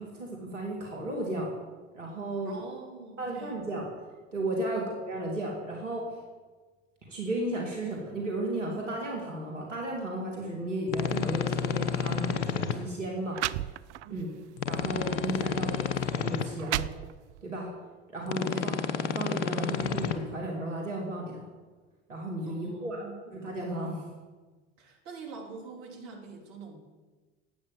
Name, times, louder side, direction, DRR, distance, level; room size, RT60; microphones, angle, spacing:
voice 1, 0.0-1.5 1.9-2.6 3.2-3.9 4.3-6.1 7.1-13.7 14.1-14.3 14.7-16.8 17.4-17.7 18.1-21.5 22.1-23.1 23.3-24.0, right 1 dB, 90° right, -1 dB, 2.5 m, -34 dB
voice 2, 2.4-3.6 4.7-4.9 14.0-14.5 18.5-18.7 22.5-23.3 24.8-26.8, right 4 dB, 55° right, 0 dB, 3.2 m, -45 dB
sound 1, 10.9-12.7 14.6-16.4 18.3-20.1, left 7 dB, 75° left, 1.1 m, -30 dB
hit paper, 12.1-12.3 13.0-13.1 13.3-14.2 14.8-15.0 15.7-15.8 16.3-17.5, right 15 dB, 75° right, 0.5 m, -34 dB
12.0 x 8.6 x 7.4 m, 1.3 s
figure-of-eight pair, 70°, 36 cm